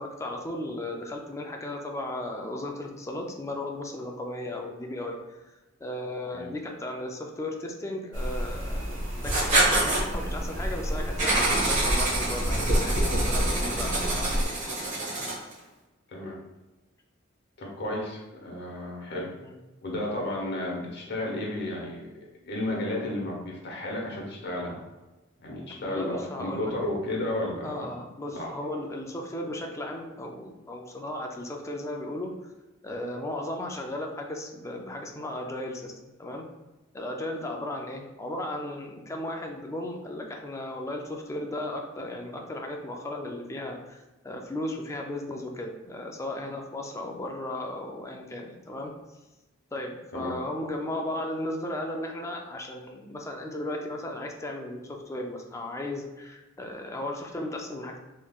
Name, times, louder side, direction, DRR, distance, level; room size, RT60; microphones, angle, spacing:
voice 1, 0.0-5.5 5.8-14.9 19.4-19.6 25.7-26.7 27.6-32.3 32.8-36.5 36.9-44.0 44.2-48.9 49.7-58.0, left 1 dB, 15° left, 2 dB, 0.4 m, -35 dB
sound 1, 8.1-14.5, equal, 70° right, 1.0 m, -29 dB
Writing, 9.2-10.0 11.2-15.5, right 2 dB, 40° right, 1.1 m, -27 dB
voice 2, 17.6-19.3 19.8-22.1 22.4-24.8 25.4-27.9 28.3-28.5 50.1-50.3, left 1 dB, 55° left, -2 dB, 0.9 m, -32 dB
3.5 x 3.1 x 2.4 m, 1.1 s
head